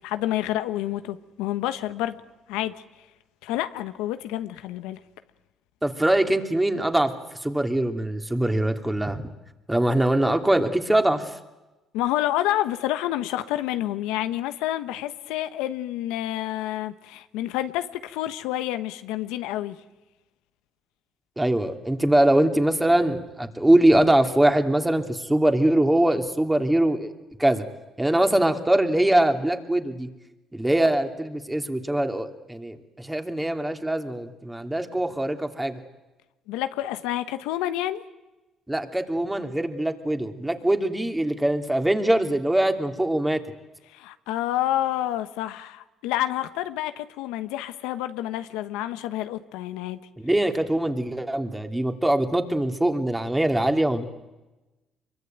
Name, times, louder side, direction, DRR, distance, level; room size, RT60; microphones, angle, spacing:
voice 1, 0.0-2.2 2.5-2.7 3.4-5.0 11.9-19.8 36.5-38.0 43.9-50.0, left 13 dB, 85° left, 1.2 m, -28 dB
voice 2, 5.8-7.1 7.4-9.2 9.7-11.3 21.4-27.1 27.4-27.7 28.0-30.1 30.5-35.8 38.7-43.4 50.2-54.0, right 1 dB, 10° right, 2.8 m, -22 dB
24.5 x 23.0 x 9.3 m
supercardioid pair, 70°, 0 cm